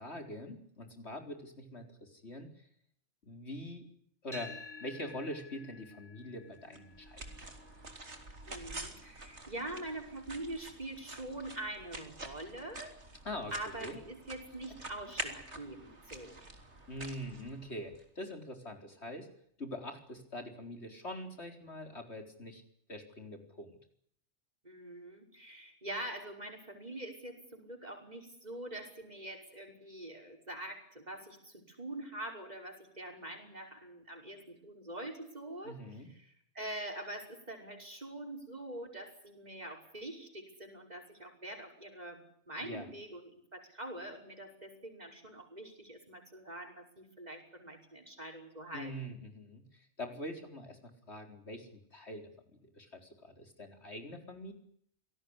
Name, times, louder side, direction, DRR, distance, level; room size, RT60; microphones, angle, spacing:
voice 1, 0.0-2.7 3.2-3.9 4.2-7.4 13.2-14.0 16.9-19.3 19.6-22.6 22.9-23.8 35.6-36.1 42.6-42.9 48.7-54.5, left 1 dB, 75° left, 5 dB, 4.7 m, -44 dB
sound 1, 4.3-12.5, left 3 dB, 45° left, 6.3 m, -54 dB
sound 2, 6.7-18.0, right 2 dB, 85° right, 3.8 m, -47 dB
voice 2, 8.4-12.9 13.5-16.4 24.6-35.8 36.1-49.2, right 1 dB, 40° right, 4 dB, 5.9 m, -44 dB
26.5 x 18.5 x 9.8 m, 0.66 s
omnidirectional pair, 1.1 m